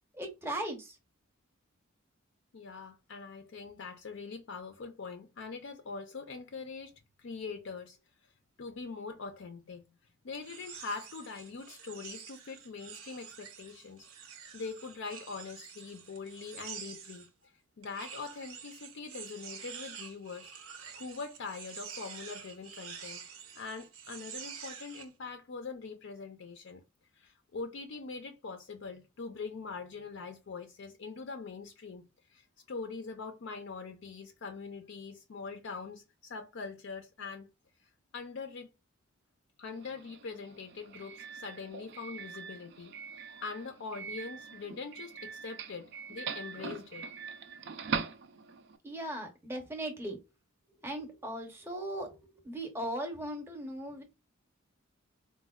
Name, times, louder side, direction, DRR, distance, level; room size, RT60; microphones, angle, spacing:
voice 1, 0.2-0.9 48.8-50.2 50.8-52.1 52.4-54.0, right 1 dB, 10° right, 0.7 m, -38 dB
voice 2, 2.5-8.0 8.6-9.8 10.2-14.1 14.5-17.3 17.8-23.2 23.5-26.8 27.1-37.5 38.1-38.7 39.6-47.1, left 4 dB, 60° left, 0.4 m, -43 dB
sound 1, 10.3-17.3 17.8-25.1, right 7 dB, 80° right, 0.7 m, -48 dB
Doorbell, 39.7-48.8, right 6 dB, 55° right, 0.3 m, -42 dB
4.0 x 2.2 x 2.2 m
head